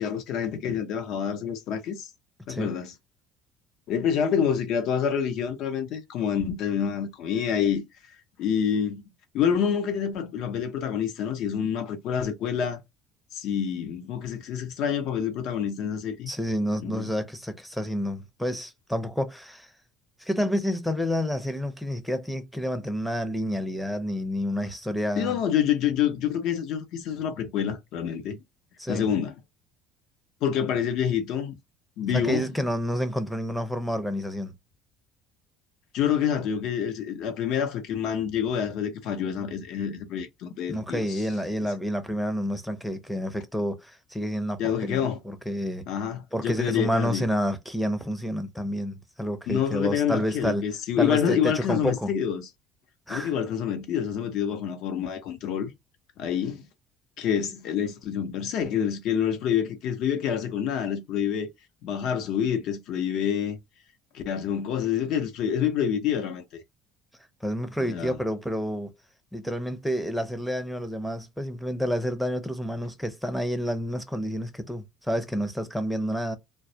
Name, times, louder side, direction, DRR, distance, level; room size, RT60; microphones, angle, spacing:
voice 1, 0.0-2.1 2.5-2.9 3.9-7.9 8.4-9.0 9.3-12.8 13.3-16.3 16.8-17.1 25.2-28.4 28.9-29.3 30.4-31.5 32.0-32.5 35.9-41.2 44.6-45.2 45.9-47.3 49.5-52.5 53.1-55.7 56.2-56.7 57.2-61.5 61.8-63.6 64.1-66.6 67.8-68.2, left 8 dB, 65° left, 0.7 m, -27 dB
voice 2, 16.3-19.7 20.2-25.4 28.8-29.1 32.1-34.5 40.7-45.8 46.3-50.7 51.0-52.1 53.1-53.3 67.4-68.9 69.3-76.4, equal, ahead, 0.5 m, -29 dB
2.2 x 2.1 x 2.7 m
cardioid pair, 120°, 0 cm